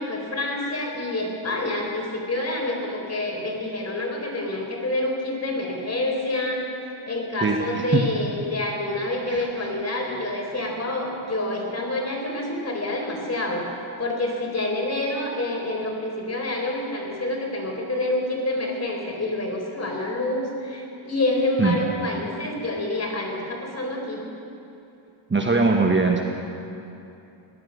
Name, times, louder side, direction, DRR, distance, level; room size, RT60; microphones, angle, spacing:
voice 1, 0.0-24.2, left 2 dB, 30° left, 0 dB, 4.0 m, -27 dB
voice 2, 7.4-8.0 9.3-9.5 21.6-21.8 25.3-26.2, right 3 dB, 25° right, 2 dB, 1.3 m, -21 dB
18.0 x 11.5 x 6.3 m, 2.8 s
cardioid pair, 85°, 49 cm